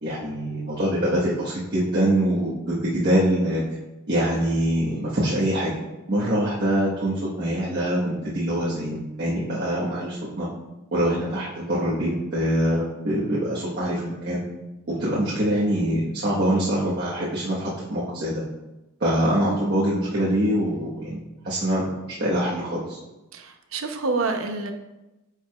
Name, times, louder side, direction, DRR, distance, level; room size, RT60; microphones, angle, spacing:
voice 1, 0.0-3.6 4.1-5.7 6.1-10.5 10.9-14.4 14.9-18.4 19.0-21.2 21.4-23.0, right 1 dB, 50° right, -9 dB, 1.3 m, -24 dB
voice 2, 23.3-24.7, right 3 dB, 70° right, 6 dB, 0.7 m, -27 dB
9.4 x 4.7 x 2.4 m, 1.0 s
head